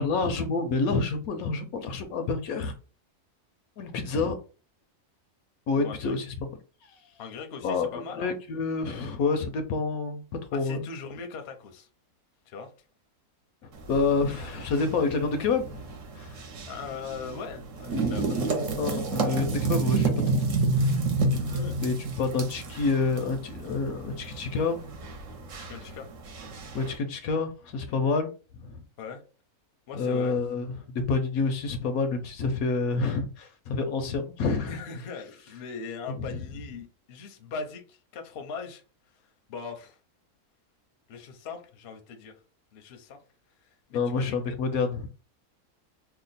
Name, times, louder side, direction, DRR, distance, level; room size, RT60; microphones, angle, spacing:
voice 1, 0.0-2.7 3.8-4.4 5.7-6.2 6.8-6.9 7.6-10.2 10.5-10.8 13.9-15.8 16.2-16.4 18.8-20.1 21.8-24.8 26.7-28.3 28.6-28.8 29.9-30.7 31.1-34.7 36.1-36.4 43.9-45.1, left 4 dB, 75° left, 1.0 m, -28 dB
voice 2, 5.8-6.2 7.2-8.3 10.5-11.9 12.5-12.7 16.6-18.9 21.5-21.8 25.6-26.1 27.9-28.0 29.0-29.2 29.9-30.4 34.7-40.0 41.1-42.4 42.7-43.2 43.6-44.6, left 5 dB, 55° left, 0.8 m, -40 dB
sound 1, 13.7-27.0, right 3 dB, 60° right, 1.1 m, -30 dB
2.9 x 2.3 x 4.0 m
omnidirectional pair, 1.6 m